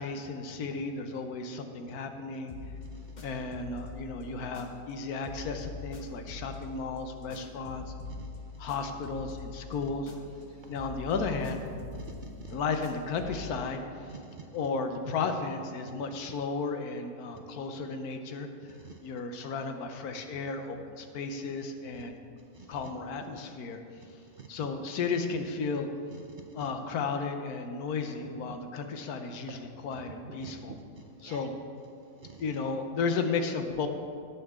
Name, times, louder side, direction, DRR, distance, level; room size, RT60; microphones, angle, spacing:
voice 1, 0.0-2.5 3.2-7.9 8.6-10.1 10.7-11.7 12.5-14.1 14.5-18.5 19.0-22.2 22.7-23.8 24.5-25.9 26.5-30.7 31.2-31.5 32.4-33.9, left 4 dB, 85° left, 6 dB, 1.3 m, -34 dB
sound 1, 2.5-5.0 5.2-10.5 10.7-13.5, left 3 dB, 35° left, 0.9 m, -44 dB
voice 2, 2.8-3.3 7.3-7.4 8.1-8.3 10.5-10.7 11.9-12.6 14.1-14.5 15.9-16.0 18.8-19.0 22.5-22.8 24.3-24.5 26.1-26.7 28.5-28.6 30.1-30.2 30.4-30.5 31.2-31.5 32.2-32.4, right 5 dB, 60° right, 3 dB, 0.5 m, -48 dB
17.0 x 5.8 x 3.6 m, 2.5 s
omnidirectional pair, 1.6 m